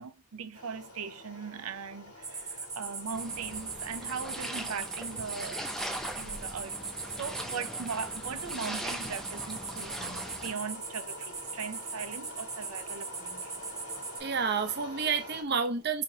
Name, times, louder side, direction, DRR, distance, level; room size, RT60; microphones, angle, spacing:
voice 1, 0.0-5.6 6.2-6.8 7.2-13.6, right 6 dB, 90° right, 0.6 m, -39 dB
sound 1, 0.5-15.4, left 1 dB, 85° left, 2.3 m, -47 dB
sound 2, 2.2-14.2, right 4 dB, 15° right, 1.0 m, -40 dB
sound 3, 3.1-10.5, equal, ahead, 0.5 m, -41 dB
voice 2, 13.9-16.0, right 5 dB, 50° right, 0.7 m, -30 dB
5.0 x 3.0 x 2.8 m
head